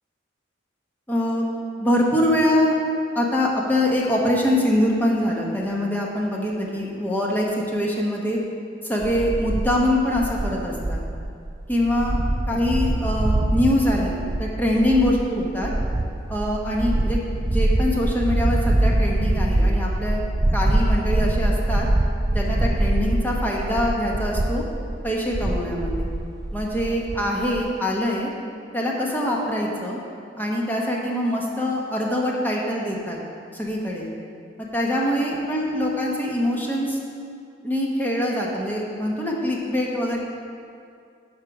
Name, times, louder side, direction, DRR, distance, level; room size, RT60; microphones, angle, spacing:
voice 1, 1.1-1.4 1.8-2.8 3.1-8.4 8.8-11.0 11.7-12.2 12.5-15.7 16.3-20.2 20.5-21.9 22.3-24.6 25.0-26.1 26.5-28.3 28.7-30.0 30.4-33.2 33.5-34.1 34.6-37.0 37.6-40.2, left 1 dB, 10° left, -2 dB, 1.1 m, -24 dB
sound 1, 9.0-27.6, right 1 dB, 20° right, 0.3 m, -24 dB
10.5 x 5.4 x 4.8 m, 2.4 s
head